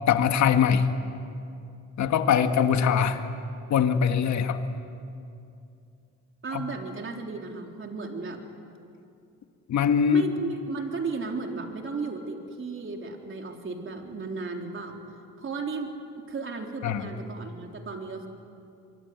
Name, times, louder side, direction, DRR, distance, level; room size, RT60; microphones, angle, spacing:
voice 1, 0.1-0.9 2.0-3.2 3.7-4.6 6.5-6.6 9.7-10.3 16.8-17.0, left 7 dB, 65° left, 7 dB, 1.8 m, -22 dB
voice 2, 6.4-8.4 10.1-15.0 15.4-18.3, right 4 dB, 40° right, 2 dB, 3.8 m, -35 dB
24.5 x 24.0 x 9.5 m, 2.6 s
cardioid pair, 90°, 30 cm